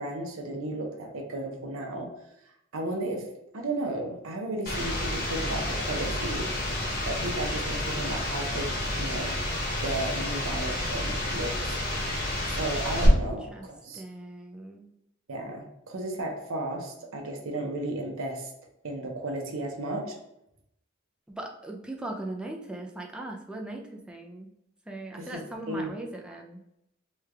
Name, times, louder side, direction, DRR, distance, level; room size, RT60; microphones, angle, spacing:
voice 1, 0.0-2.1 2.7-3.3 3.5-8.7 9.0-9.4 9.8-11.8 12.1-14.0 15.3-18.5 18.8-20.2 25.2-25.4 25.7-25.9, right 2 dB, 75° right, 2 dB, 0.7 m, -34 dB
sound 1, 4.7-13.1, left 1 dB, 50° left, 1.0 m, -30 dB
voice 2, 13.1-13.7 13.9-14.9 21.3-24.5 24.9-26.6, right 1 dB, 5° right, 0 dB, 0.4 m, -39 dB
3.2 x 2.3 x 3.2 m, 0.81 s
head